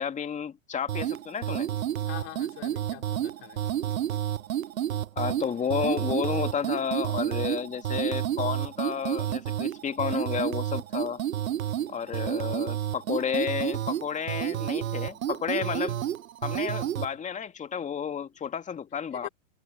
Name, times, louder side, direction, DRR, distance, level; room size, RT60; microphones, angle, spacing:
voice 1, 0.0-1.7 5.2-11.2 11.9-16.0 16.4-19.3, left 7 dB, 20° left, 2.3 m, -31 dB
sound 1, 0.9-17.1, right 11 dB, 85° right, 0.7 m, -30 dB
voice 2, 2.1-3.7 19.1-19.3, left 35 dB, 45° left, 4.3 m, -44 dB
hypercardioid pair, 115°, 40 cm